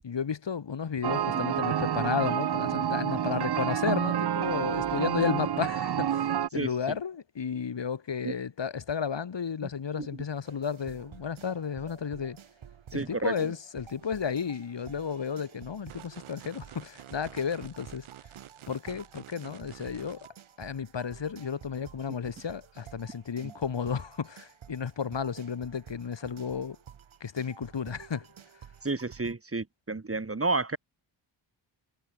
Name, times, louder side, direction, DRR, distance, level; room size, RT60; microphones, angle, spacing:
voice 1, 0.0-12.4 12.9-18.1 18.7-20.3 20.6-26.8 27.2-28.3, left 6 dB, 60° left, 6.8 m, -33 dB
sound 1, 1.0-6.5, right 9 dB, 55° right, 1.0 m, -28 dB
voice 2, 6.5-7.0 8.2-8.3 9.6-9.7 10.0-10.2 12.9-13.3 23.4-23.5 28.8-30.8, right 3 dB, 30° right, 3.6 m, -31 dB
sound 2, 10.4-29.3, right 8 dB, 75° right, 7.1 m, -51 dB
sound 3, 15.9-20.3, right 12 dB, 90° right, 3.9 m, -50 dB
cardioid pair, 55°, 48 cm